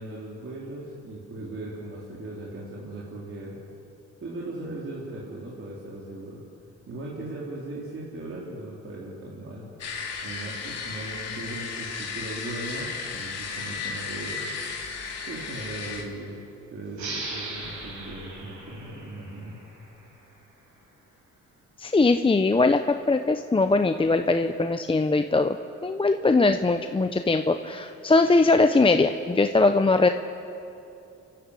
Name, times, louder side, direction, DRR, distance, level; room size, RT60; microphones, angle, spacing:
voice 1, 0.0-3.6 4.2-6.4 6.9-9.7 10.2-14.4 15.3-16.4 16.7-19.6, right 2 dB, 45° right, -5 dB, 4.1 m, -38 dB
sound 1, 9.8-16.0, left 5 dB, 55° left, 3.4 m, -34 dB
sound 2, 16.9-20.2, right 2 dB, 75° right, 6.7 m, -38 dB
voice 2, 21.8-25.6 25.8-30.1, left 3 dB, 20° left, 7 dB, 0.8 m, -21 dB
29.0 x 12.0 x 8.3 m, 2.8 s
cardioid pair, 90°, 30 cm